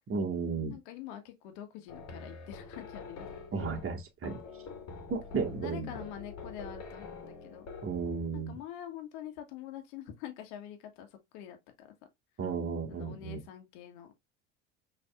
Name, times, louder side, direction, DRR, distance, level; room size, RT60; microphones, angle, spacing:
voice 1, 0.1-0.8 3.5-4.4 5.1-6.0 7.8-8.5 12.4-13.4, right 5 dB, 35° right, 1.6 m, -34 dB
voice 2, 0.7-3.3 5.6-7.7 8.3-11.9 12.9-14.1, left 11 dB, 65° left, 1.5 m, -45 dB
sound 1, 1.9-8.4, left 4 dB, 40° left, 1.9 m, -46 dB
6.3 x 3.4 x 2.4 m
hypercardioid pair, 70°, 39 cm